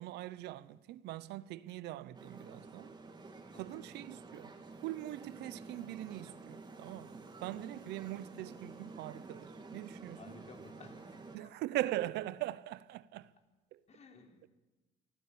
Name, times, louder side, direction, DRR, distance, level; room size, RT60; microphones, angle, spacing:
voice 1, 0.0-2.9 3.6-4.5 4.8-10.2 11.3-13.3 13.7-13.8, right 15 dB, 80° right, 0.8 m, -41 dB
sound 1, 2.1-11.4, right 3 dB, 25° right, 2.7 m, -51 dB
voice 2, 3.5-3.8 9.8-11.4 13.9-14.5, left 4 dB, 40° left, 4.0 m, -57 dB
24.0 x 15.5 x 8.6 m
cardioid pair, 110°, 17 cm